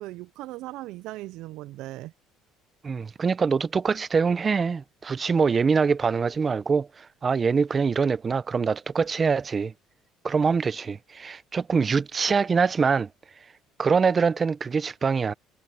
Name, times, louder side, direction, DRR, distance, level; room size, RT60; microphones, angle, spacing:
voice 1, 0.0-2.1, right 17 dB, 75° right, 0.3 m, -38 dB
voice 2, 2.8-9.7 10.2-13.1 13.8-15.3, right 5 dB, 30° right, 0.8 m, -24 dB
cardioid pair, 115°, 0 cm